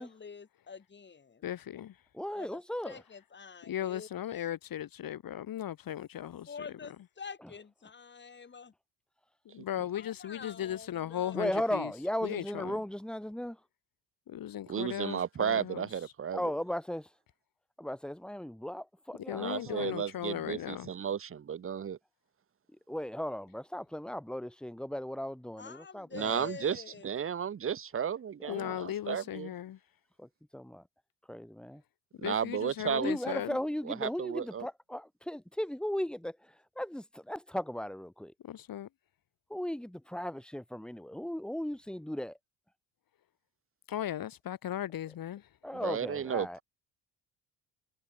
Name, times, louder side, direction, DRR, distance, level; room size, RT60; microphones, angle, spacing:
voice 1, 0.0-1.4 2.3-4.1 6.5-8.7 9.9-11.4 25.6-27.1, left 5 dB, 25° left, 2.4 m, -46 dB
voice 2, 1.4-2.0 3.7-6.7 9.5-11.9 12.2-12.8 14.3-15.9 19.3-20.9 28.5-29.8 32.2-33.6 38.4-38.9 43.9-45.5, left 11 dB, 55° left, 2.5 m, -37 dB
voice 3, 2.1-3.0 11.3-13.6 16.3-17.0 17.8-19.9 22.9-26.5 28.5-28.8 30.2-30.8 31.3-31.8 33.0-38.3 39.5-42.4 45.6-46.6, equal, ahead, 1.2 m, -36 dB
voice 4, 14.7-16.4 19.4-22.0 26.1-29.5 32.2-33.1 33.8-34.7 45.7-46.6, right 8 dB, 30° right, 1.2 m, -34 dB
cardioid pair, 95°, 42 cm